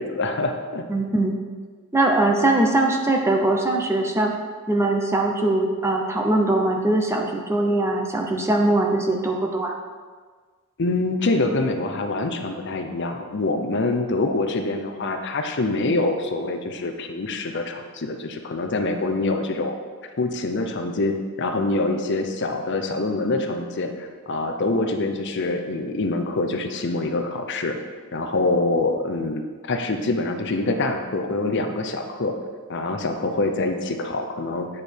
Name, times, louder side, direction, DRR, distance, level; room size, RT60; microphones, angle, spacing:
voice 1, 0.0-0.8 10.8-19.7 20.2-27.8 28.1-32.3 32.7-34.7, left 2 dB, 50° left, 5 dB, 0.6 m, -25 dB
voice 2, 0.9-1.4 1.9-4.3 4.7-9.7, right 2 dB, 10° right, 1 dB, 0.7 m, -21 dB
8.4 x 5.0 x 4.5 m, 1.5 s
head